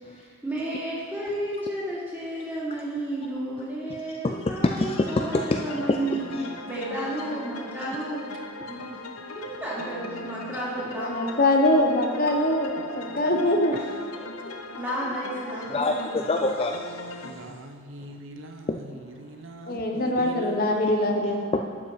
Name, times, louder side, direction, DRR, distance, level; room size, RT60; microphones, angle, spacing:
voice 1, 0.0-6.2 6.6-8.3 8.7-9.0 9.6-11.1 13.7-13.8 14.7-16.2, right 1 dB, 10° right, -8 dB, 3.0 m, -32 dB
voice 2, 4.2-5.6 5.9-6.5 15.7-17.6 18.7-18.8 20.8-20.9 21.5-21.6, left 2 dB, 25° left, 4 dB, 0.3 m, -27 dB
sound 1, 4.8-17.3, left 2 dB, 85° left, 0.8 m, -39 dB
voice 3, 11.0-13.8 19.7-21.4, left 1 dB, 40° left, 2 dB, 0.9 m, -23 dB
voice 4, 17.2-18.7 19.2-20.9, right 1 dB, 60° right, 5 dB, 0.8 m, -41 dB
12.0 x 7.6 x 4.8 m, 2.1 s
head